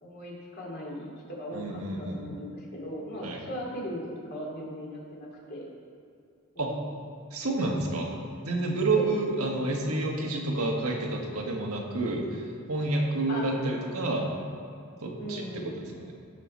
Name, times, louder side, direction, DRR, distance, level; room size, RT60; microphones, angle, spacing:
voice 1, 0.0-4.0 4.3-5.7 6.5-6.9 8.9-9.1 13.3-13.5 15.2-15.8, equal, 45° left, -4 dB, 2.5 m, -38 dB
voice 2, 1.5-2.3 3.2-3.4 6.6-6.7 7.3-8.1 8.4-14.3 15.0-16.1, right 2 dB, 80° right, 0 dB, 1.6 m, -29 dB
16.0 x 6.9 x 4.2 m, 2.3 s
head